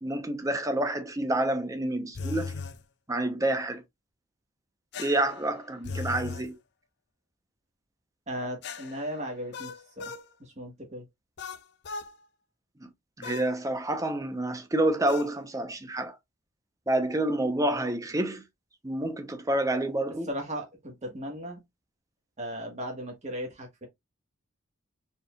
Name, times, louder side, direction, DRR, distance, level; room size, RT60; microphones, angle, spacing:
voice 1, 0.0-2.6 3.1-3.8 5.0-6.6 13.2-16.1 16.9-18.4 18.8-20.3, right 1 dB, 15° right, 0.7 m, -28 dB
sound 1, 2.1-2.8 4.9-6.5 8.6-10.3 11.4-12.1 13.2-13.5 15.1-15.3, left 4 dB, 50° left, 0.4 m, -38 dB
voice 2, 8.3-10.1 10.4-11.0 20.3-21.6 22.4-23.9, equal, 30° right, 1.4 m, -37 dB
4.2 x 3.6 x 2.3 m
head